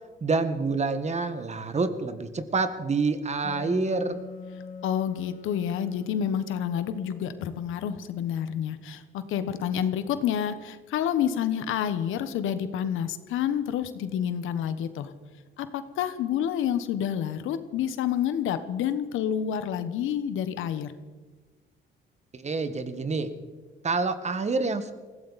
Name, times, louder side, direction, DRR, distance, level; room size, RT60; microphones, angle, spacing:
voice 1, 0.2-4.2 22.3-23.3 23.8-24.9, right 3 dB, 35° right, 10 dB, 1.6 m, -27 dB
Wind instrument woodwind instrument, 3.4-8.8, left 5 dB, 45° left, 1.3 m, -44 dB
voice 2, 4.8-15.1 15.6-20.9, left 9 dB, 85° left, 11 dB, 1.2 m, -29 dB
20.0 x 16.0 x 4.2 m, 1.3 s
cardioid pair, 90°, 20 cm